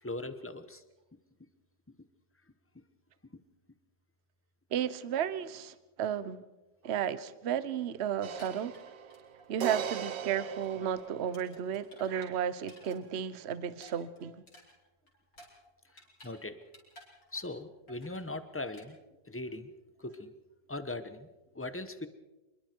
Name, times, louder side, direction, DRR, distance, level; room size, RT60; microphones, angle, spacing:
voice 1, 0.0-0.8 15.9-16.6 17.3-19.0 19.2-19.7 20.0-20.3 20.7-21.3 21.5-22.1, left 2 dB, 10° left, 10 dB, 0.8 m, -40 dB
voice 2, 4.7-6.4 6.8-8.7 9.5-14.4, right 9 dB, 45° right, 15 dB, 1.0 m, -33 dB
sound 1, 8.2-9.7 10.0-10.2 10.5-13.0 13.3-16.4 16.6-17.6 17.9-18.2 18.7-18.9, left 1 dB, 50° left, 5.6 m, -56 dB
sound 2, 8.2-11.6, right 8 dB, 75° right, 1.7 m, -39 dB
26.5 x 22.5 x 4.6 m, 1.0 s
omnidirectional pair, 2.0 m